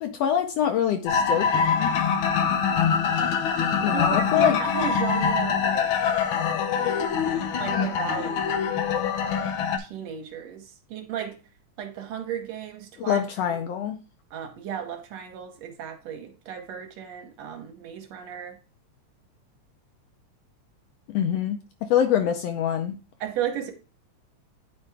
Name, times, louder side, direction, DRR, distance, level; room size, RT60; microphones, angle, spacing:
voice 1, 0.0-1.9 3.8-4.6 13.0-14.0 21.1-23.0, left 9 dB, 75° left, 6 dB, 1.6 m, -25 dB
sound 1, 1.1-9.8, left 6 dB, 90° left, 1.1 m, -24 dB
voice 2, 3.9-5.9 7.6-8.3 9.8-11.4 11.8-13.2 14.3-18.6 23.2-23.7, right 8 dB, 70° right, 5 dB, 2.0 m, -34 dB
9.8 x 4.4 x 3.5 m, 0.33 s
omnidirectional pair, 3.3 m